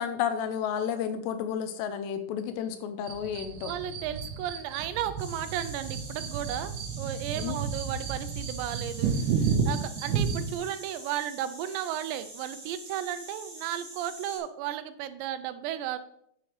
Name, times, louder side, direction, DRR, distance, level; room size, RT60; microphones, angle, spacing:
voice 1, 0.0-3.7 7.4-7.5 10.1-10.2, left 8 dB, 80° left, 9 dB, 2.8 m, -31 dB
sound 1, 3.0-10.6, right 6 dB, 75° right, 2.8 m, -31 dB
voice 2, 3.6-16.0, right 11 dB, 90° right, 11 dB, 2.9 m, -34 dB
sound 2, 5.2-14.4, right 2 dB, 40° right, 3.8 m, -45 dB
9.5 x 6.4 x 3.3 m, 0.70 s
omnidirectional pair, 4.9 m